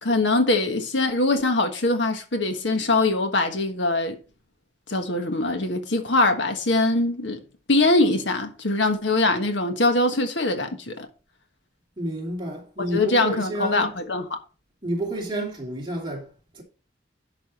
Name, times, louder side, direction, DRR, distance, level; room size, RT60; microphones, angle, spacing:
voice 1, 0.0-4.2 4.9-7.4 7.7-11.1 12.9-14.4, left 2 dB, 75° left, 1.5 m, -22 dB
voice 2, 12.0-13.9 14.8-16.6, right 1 dB, 25° right, 2.8 m, -30 dB
11.0 x 6.0 x 4.3 m
head